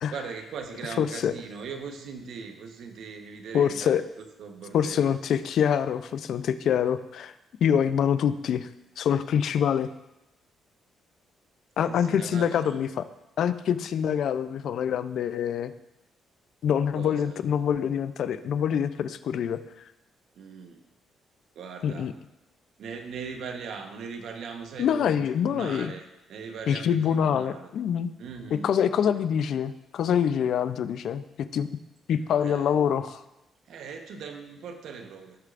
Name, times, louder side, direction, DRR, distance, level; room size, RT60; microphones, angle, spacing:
voice 1, 0.1-5.2 11.8-12.8 16.9-17.4 20.3-20.8 21.5-22.1 22.8-27.7 28.2-28.7 32.4-32.7 33.7-35.4, right 5 dB, 75° right, 5 dB, 1.1 m, -40 dB
voice 2, 1.0-1.3 3.5-4.0 4.7-7.3 7.6-8.7 9.0-9.9 11.8-13.0 13.4-15.7 16.6-19.6 21.8-22.1 24.8-25.9 26.7-28.1 28.6-31.2 31.5-31.7 32.1-33.2, left 8 dB, 70° left, 12 dB, 0.5 m, -25 dB
16.5 x 6.5 x 2.5 m, 0.95 s
cardioid pair, 90°, 0 cm